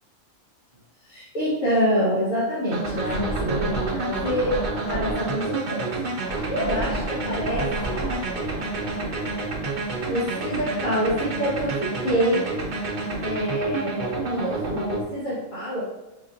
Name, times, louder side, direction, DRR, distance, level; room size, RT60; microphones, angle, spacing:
voice 1, 1.0-8.0 10.1-12.4 13.2-15.8, equal, 85° left, -10 dB, 1.6 m, -27 dB
sound 1, 2.7-15.0, right 3 dB, 50° right, 0.6 m, -29 dB
Scratching (performance technique), 3.0-5.3 6.3-10.6, equal, 50° left, 0.5 m, -34 dB
5.6 x 2.7 x 2.6 m, 1.0 s
omnidirectional pair, 1.3 m